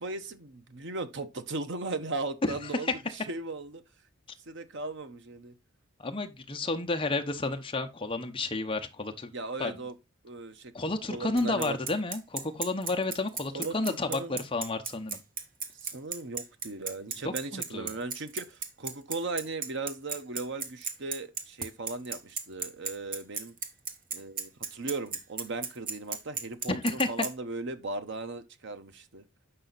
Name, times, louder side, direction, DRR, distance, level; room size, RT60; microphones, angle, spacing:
voice 1, 0.0-2.9 3.1-3.8 4.5-5.5 9.3-9.9 10.2-10.7 11.1-11.8 13.5-14.4 15.8-23.5 24.1-29.2, right 3 dB, 65° right, 1.0 m, -37 dB
voice 2, 6.0-9.3 9.6-9.8 10.7-15.2 17.5-17.9 26.7-27.3, left 2 dB, 25° left, 0.9 m, -31 dB
Bicycle, 11.4-27.3, right 5 dB, 45° right, 1.5 m, -34 dB
7.7 x 5.6 x 4.0 m
head